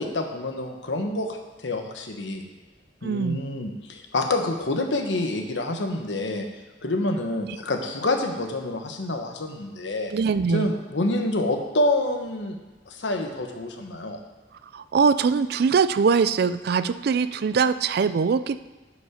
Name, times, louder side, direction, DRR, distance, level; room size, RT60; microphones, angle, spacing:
voice 1, 0.0-2.5 3.0-6.5 6.8-10.1 10.5-12.6 12.9-14.2, left 2 dB, 85° left, 4 dB, 1.1 m, -27 dB
voice 2, 3.0-3.4 10.1-10.7 14.7-18.7, right 5 dB, 60° right, 13 dB, 0.4 m, -22 dB
11.0 x 5.2 x 5.0 m, 1.2 s
head